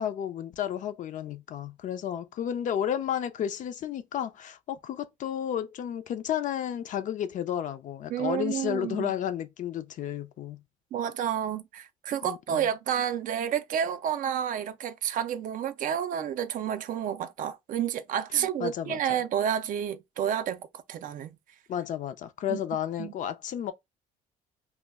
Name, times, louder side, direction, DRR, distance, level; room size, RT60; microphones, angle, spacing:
voice 1, 0.0-10.6 12.2-12.6 18.3-19.0 21.7-23.7, left 10 dB, 50° left, 0.4 m, -32 dB
voice 2, 8.1-9.1 10.9-21.4 22.5-22.6 23.0-23.1, right 9 dB, 55° right, 0.4 m, -30 dB
2.2 x 2.1 x 3.3 m
cardioid pair, 110°, 17 cm